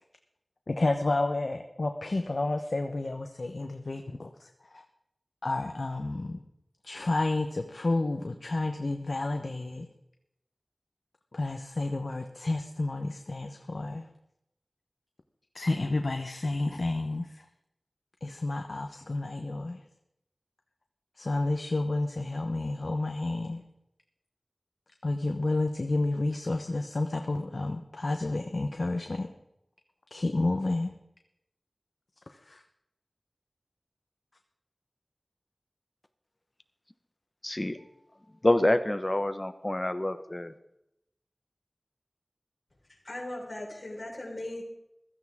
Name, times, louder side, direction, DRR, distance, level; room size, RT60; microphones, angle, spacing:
voice 1, 0.7-4.8 5.4-6.4 6.8-9.9 11.3-14.1 15.5-17.3 18.2-19.8 21.2-23.6 25.0-29.3 30.1-30.9 32.5-32.6, left 2 dB, 75° left, 5 dB, 0.9 m, -30 dB
voice 2, 37.4-37.8 38.4-40.5, left 1 dB, 35° left, 10 dB, 1.1 m, -27 dB
voice 3, 43.0-44.6, left 1 dB, 60° left, -3 dB, 4.4 m, -38 dB
15.5 x 14.0 x 3.6 m, 0.83 s
wide cardioid pair, 45°, 0 cm